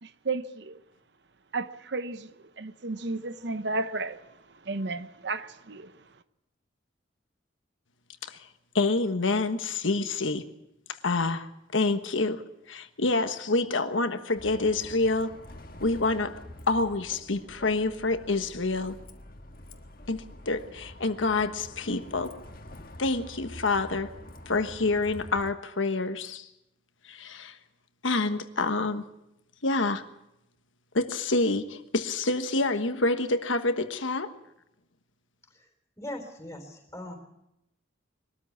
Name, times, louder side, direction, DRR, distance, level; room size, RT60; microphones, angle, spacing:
voice 1, 0.0-0.8 1.5-2.3 2.6-4.2 4.6-5.9, right 3 dB, 60° right, 0.9 m, -33 dB
voice 2, 8.7-10.5 11.0-15.4 15.8-16.4 16.7-19.0 20.1-22.3 23.0-24.1 24.5-26.5 27.0-27.6 28.0-29.0 29.6-30.0 30.9-34.3, left 3 dB, 85° left, 1.3 m, -27 dB
Bus, 14.4-25.5, left 1 dB, 50° left, 1.5 m, -47 dB
voice 3, 36.0-37.1, left 1 dB, 15° left, 3.7 m, -40 dB
22.0 x 13.0 x 9.5 m
head